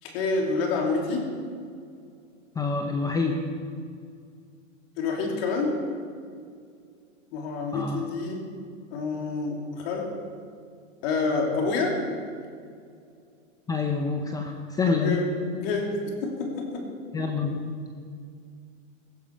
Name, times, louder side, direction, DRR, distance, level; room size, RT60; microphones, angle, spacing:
voice 1, 0.0-1.3 5.0-5.9 7.3-8.5 8.9-10.2 11.0-12.1 14.9-16.9, left 3 dB, 45° left, 1 dB, 2.8 m, -28 dB
voice 2, 2.6-3.4 7.7-8.0 13.7-15.2 17.1-17.8, left 4 dB, 10° left, 4 dB, 0.6 m, -27 dB
16.0 x 15.5 x 4.6 m, 2.3 s
hypercardioid pair, 140°, 39 cm